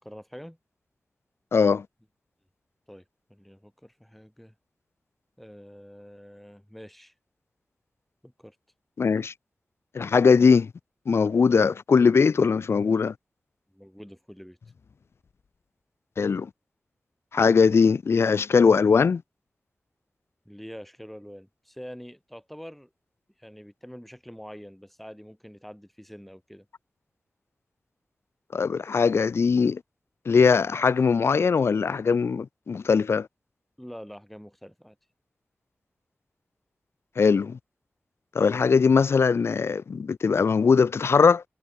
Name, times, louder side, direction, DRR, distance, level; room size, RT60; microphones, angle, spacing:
voice 1, 0.0-0.6 2.9-3.0 3.3-4.5 5.4-7.1 8.2-8.6 13.7-14.6 20.5-22.9 23.4-26.7 33.8-35.0, equal, 5° left, 5.3 m, -45 dB
voice 2, 1.5-1.9 9.0-9.3 9.9-10.7 11.0-13.1 16.2-16.5 17.3-19.2 28.5-29.8 30.2-33.3 37.2-37.6 38.3-41.4, left 5 dB, 85° left, 1.3 m, -20 dB
wide cardioid pair, 60°, 4 cm